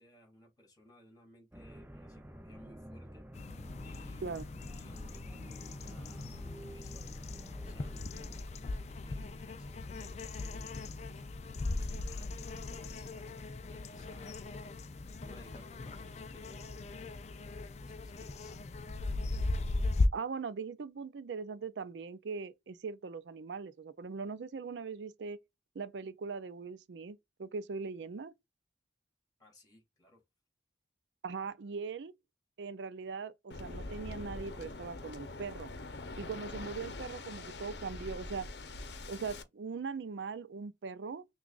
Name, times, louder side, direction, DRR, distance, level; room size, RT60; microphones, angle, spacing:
voice 1, 0.0-4.4 4.6-14.5 15.2-16.8 17.8-18.6 29.4-30.2, left 1 dB, 20° left, 2.9 m, -61 dB
sound 1, 1.5-8.4, right 1 dB, 10° right, 0.6 m, -50 dB
sound 2, 3.3-20.1, left 2 dB, 40° left, 0.4 m, -38 dB
voice 2, 20.1-25.4 25.8-28.3 31.2-32.1 32.6-35.7 36.2-38.5 39.1-41.2, right 5 dB, 80° right, 0.5 m, -40 dB
Waves surf, 33.5-39.4, left 2 dB, 70° left, 0.8 m, -44 dB
5.9 x 2.3 x 2.4 m
head